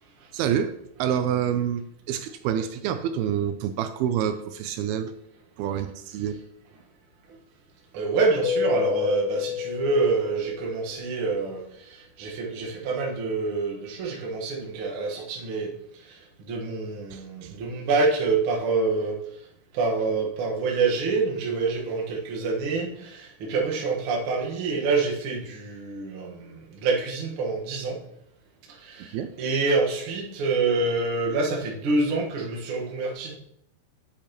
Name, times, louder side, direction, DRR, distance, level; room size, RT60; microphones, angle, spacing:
voice 1, 0.3-0.7 1.0-5.1 5.6-6.4 17.1-17.5 29.0-29.3, right 9 dB, 80° right, 10 dB, 2.4 m, -27 dB
voice 2, 7.9-15.7 16.1-16.2 16.5-19.2 19.7-28.0 28.8-33.3, right 3 dB, 60° right, -1 dB, 1.4 m, -26 dB
Keyboard (musical), 8.4-11.0, left 10 dB, 75° left, 2.1 m, -29 dB
8.6 x 8.2 x 2.9 m, 0.73 s
omnidirectional pair, 4.6 m